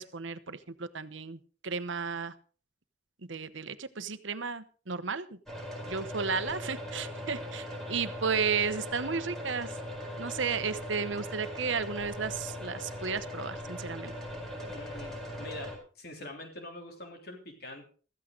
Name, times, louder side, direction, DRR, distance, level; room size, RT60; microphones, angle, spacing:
voice 1, 0.0-2.3 3.3-5.4 5.9-9.8 10.2-14.1, right 5 dB, 80° right, 12 dB, 1.0 m, -33 dB
sound 1, 5.5-15.8, left 1 dB, ahead, 5.0 m, -40 dB
voice 2, 14.6-17.9, left 1 dB, 55° left, 3 dB, 3.4 m, -45 dB
15.0 x 14.0 x 3.9 m, 0.38 s
head